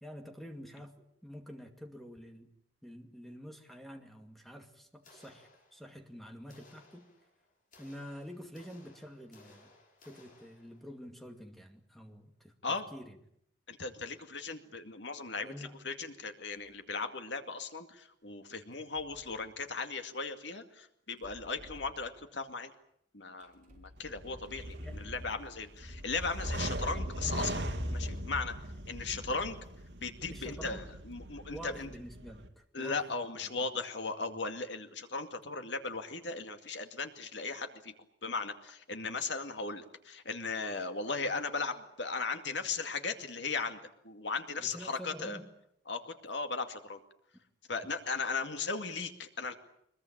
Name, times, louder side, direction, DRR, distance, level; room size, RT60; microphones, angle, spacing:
voice 1, 0.0-0.9 1.2-2.5 2.8-7.1 7.8-9.7 10.0-13.2 15.4-15.7 24.8-24.9 30.3-30.8 31.5-33.1 33.4-33.7 44.6-45.5, equal, ahead, 4 dB, 2.3 m, -48 dB
sound 1, 5.0-6.1 6.5-11.0, left 2 dB, 45° left, 6.0 m, -61 dB
voice 2, 13.7-15.5 15.8-22.7 23.1-27.6 27.9-28.6 28.9-29.6 30.0-31.9 32.7-37.9 38.2-43.8 44.0-45.4 45.9-47.0 47.7-49.5, left 4 dB, 70° left, 7 dB, 2.3 m, -37 dB
sound 2, 16.5-16.8 18.7-19.6 21.1-22.4 23.4-25.6 26.3-27.4, equal, 45° right, 5.3 m, -58 dB
sound 3, 24.0-32.5, right 1 dB, 75° right, 2.7 m, -39 dB
23.5 x 21.5 x 8.8 m, 0.73 s
head